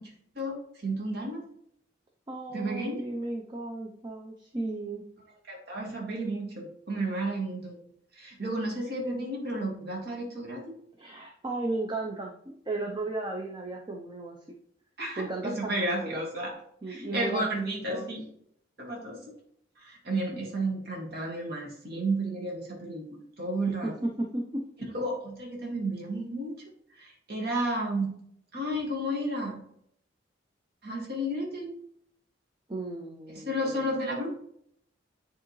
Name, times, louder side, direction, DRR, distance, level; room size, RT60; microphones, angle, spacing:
voice 1, 0.8-1.4 2.5-3.0 5.5-7.8 8.2-10.7 15.0-16.5 16.9-18.2 18.8-19.2 19.8-23.9 24.9-26.5 27.0-28.2 28.5-29.6 30.8-31.7 33.5-34.3, right 1 dB, 55° right, -1 dB, 1.9 m, -32 dB
voice 2, 2.3-5.0 11.0-14.4 15.2-16.2 16.8-18.1 20.3-20.5 23.7-24.6 32.7-33.9, right 2 dB, 25° right, 1 dB, 0.6 m, -35 dB
10.0 x 3.6 x 3.1 m, 0.70 s
head